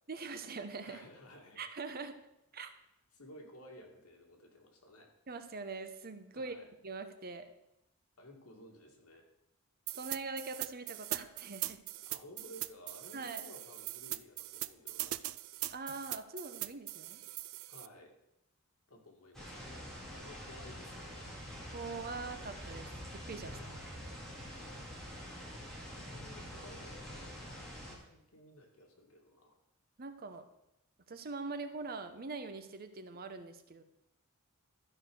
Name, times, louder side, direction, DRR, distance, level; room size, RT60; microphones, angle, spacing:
voice 1, 0.1-1.0 1.6-2.2 2.5-2.7 5.3-6.6 6.8-7.5 9.9-11.8 13.1-13.4 15.7-17.2 21.7-23.6 30.0-30.5 31.1-33.8, right 3 dB, 45° right, 9 dB, 0.9 m, -43 dB
voice 2, 0.8-1.6 3.1-5.1 6.3-6.7 8.2-9.3 12.1-15.2 17.7-18.2 18.9-21.4 23.4-24.0 24.5-24.9 25.9-29.6, left 1 dB, 85° left, 1 dB, 2.2 m, -56 dB
sound 1, 9.9-17.9, right 16 dB, 65° right, 0.4 m, -41 dB
sound 2, 19.3-28.0, equal, 5° left, 2.3 m, -46 dB
13.0 x 4.9 x 6.3 m, 0.84 s
head